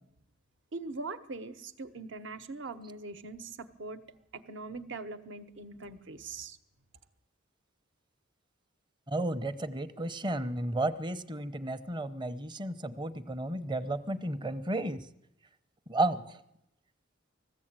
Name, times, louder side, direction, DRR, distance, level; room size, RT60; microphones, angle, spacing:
voice 1, 0.7-4.0 4.3-6.6, right 3 dB, 65° right, 10 dB, 1.2 m, -42 dB
voice 2, 9.1-15.1 15.9-16.4, right 2 dB, 25° right, 11 dB, 0.8 m, -33 dB
20.0 x 15.0 x 8.9 m, 0.86 s
head